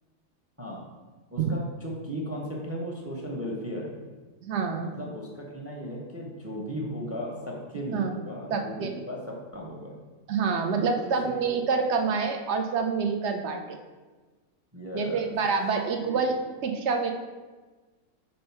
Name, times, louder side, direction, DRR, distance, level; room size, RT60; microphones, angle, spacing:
voice 1, 1.3-3.9 4.8-9.9 11.0-11.7 14.7-15.3 16.0-16.3, equal, 15° right, -1 dB, 0.5 m, -36 dB
voice 2, 4.4-5.0 7.9-8.1 8.5-8.9 10.3-13.8 14.9-16.4 16.6-17.1, right 5 dB, 60° right, 4 dB, 0.8 m, -27 dB
5.4 x 3.3 x 5.6 m, 1.3 s
omnidirectional pair, 1.6 m